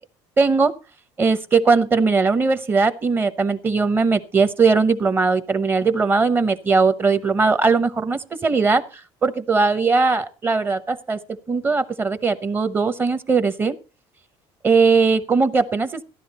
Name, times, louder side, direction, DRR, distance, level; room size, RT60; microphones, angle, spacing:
voice 1, 0.4-0.7 1.2-8.8 9.2-11.2 11.5-13.7 14.6-16.0, right 4 dB, 20° right, 12 dB, 0.8 m, -19 dB
14.5 x 11.0 x 4.1 m, 0.32 s
cardioid pair, 160°, 11 cm